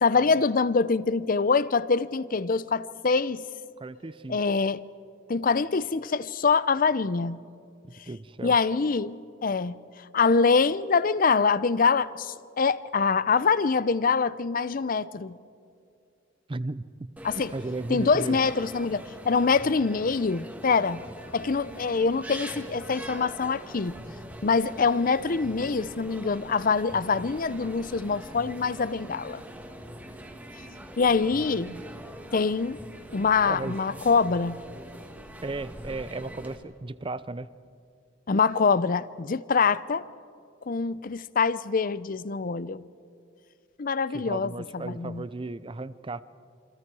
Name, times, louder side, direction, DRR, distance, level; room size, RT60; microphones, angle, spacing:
voice 1, 0.0-3.4 4.3-4.8 5.3-7.4 8.4-9.8 10.1-15.4 17.2-17.5 17.9-21.0 21.3-23.9 24.4-29.4 31.0-31.7 32.3-32.8 33.1-34.6 38.3-40.0 40.7-42.8 43.8-45.2, left 4 dB, 45° left, 0.5 m, -24 dB
voice 2, 3.8-4.4 8.1-8.5 16.5-16.8 17.5-18.5 31.6-31.9 33.5-34.1 35.4-37.5 44.1-46.2, right 2 dB, 25° right, 0.5 m, -35 dB
sound 1, 17.2-36.5, equal, 10° right, 1.6 m, -42 dB
28.0 x 25.0 x 4.8 m
head